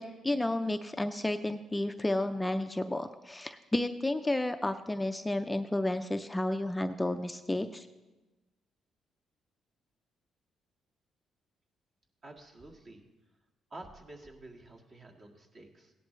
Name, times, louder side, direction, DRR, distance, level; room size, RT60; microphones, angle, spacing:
voice 1, 0.0-7.9, left 1 dB, 10° left, 8 dB, 0.5 m, -32 dB
voice 2, 12.2-13.0 13.7-15.9, right 2 dB, 45° right, 0 dB, 1.8 m, -50 dB
17.0 x 11.0 x 3.2 m, 1.1 s
cardioid pair, 90°, 0 cm